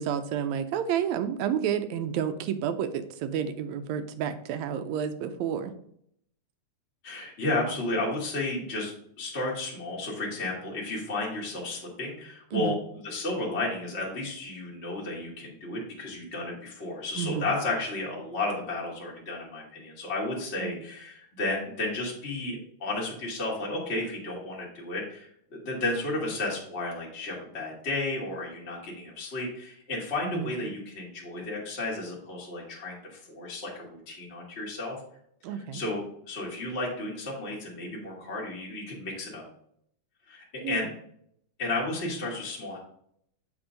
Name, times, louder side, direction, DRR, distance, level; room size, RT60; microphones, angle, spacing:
voice 1, 0.0-5.7 12.5-12.8 17.2-17.5 20.6-20.8 30.2-30.5 35.4-35.8 40.6-40.9, right 8 dB, 80° right, 10 dB, 1.8 m, -30 dB
voice 2, 7.0-12.8 13.0-35.0 35.7-39.4 40.3-40.9 41.6-42.8, left 2 dB, 30° left, -4 dB, 1.4 m, -33 dB
8.0 x 3.6 x 5.0 m, 0.69 s
omnidirectional pair, 3.6 m